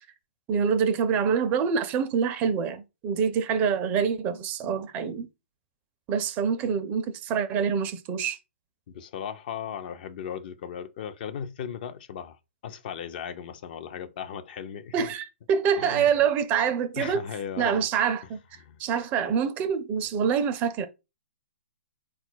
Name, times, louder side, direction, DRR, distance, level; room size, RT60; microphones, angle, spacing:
voice 1, 0.5-5.3 6.1-8.4 14.9-17.2 17.6-18.4 18.8-20.9, right 7 dB, 25° right, 0.5 m, -26 dB
voice 2, 8.9-15.1 15.8-16.2 17.0-17.9 18.2-18.3 18.6-18.8, left 8 dB, 45° left, 0.5 m, -37 dB
3.8 x 2.3 x 4.4 m
hypercardioid pair, 140°, 7 cm